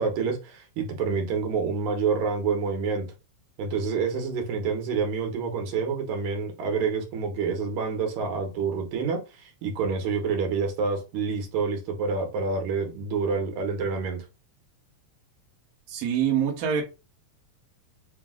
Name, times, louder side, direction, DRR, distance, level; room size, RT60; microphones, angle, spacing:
voice 1, 0.0-3.1 3.6-14.2, right 5 dB, 85° right, 2.5 m, -28 dB
voice 2, 15.9-16.8, right 8 dB, 65° right, 0.9 m, -25 dB
5.2 x 2.1 x 3.6 m
omnidirectional pair, 3.3 m